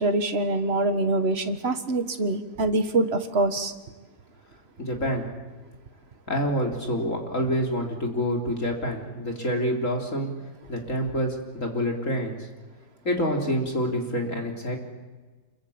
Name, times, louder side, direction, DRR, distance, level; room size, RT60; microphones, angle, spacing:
voice 1, 0.0-3.7, right 2 dB, 35° right, 1.6 m, -24 dB
voice 2, 4.8-5.3 6.3-10.3 10.7-12.4 13.0-14.8, equal, 40° left, 3.9 m, -27 dB
27.0 x 22.5 x 8.7 m
omnidirectional pair, 2.1 m